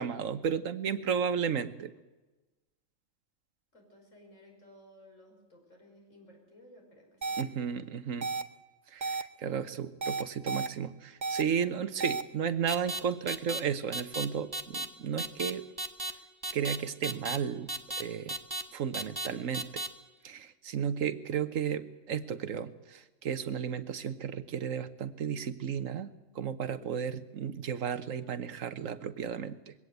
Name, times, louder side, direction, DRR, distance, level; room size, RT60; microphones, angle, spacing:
voice 1, 0.0-1.9 7.4-8.3 8.9-15.6 16.5-17.7 18.0-18.4 18.7-19.8 20.2-29.7, right 7 dB, 90° right, 12 dB, 1.4 m, -33 dB
voice 2, 3.7-7.4 26.6-27.1, equal, 75° left, 0 dB, 5.9 m, -57 dB
sound 1, 7.2-7.4 8.2-8.4 9.0-9.2 10.0-10.7 11.2-11.4 12.0-12.2, right 4 dB, 40° right, 0.9 m, -32 dB
sound 2, 12.7-13.0 13.3-13.6 13.9-14.2 14.5-14.8 15.2-15.5 15.8-16.1 16.4-16.8 17.0-17.4 17.7-18.0 18.3-18.6 18.9-19.3 19.5-19.9, right 1 dB, 20° right, 1.2 m, -34 dB
21.5 x 17.0 x 8.1 m, 1.2 s
omnidirectional pair, 1.3 m